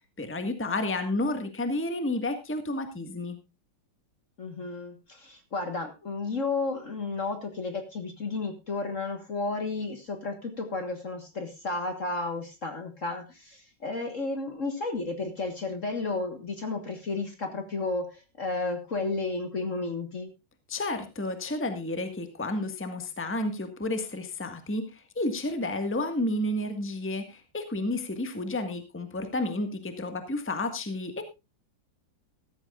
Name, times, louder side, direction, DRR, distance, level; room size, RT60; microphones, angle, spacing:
voice 1, 0.2-3.4 20.7-31.2, left 2 dB, 5° left, 7 dB, 1.4 m, -31 dB
voice 2, 4.4-20.3, left 3 dB, 40° left, 6 dB, 1.7 m, -32 dB
14.5 x 14.5 x 2.5 m, 0.25 s
omnidirectional pair, 2.3 m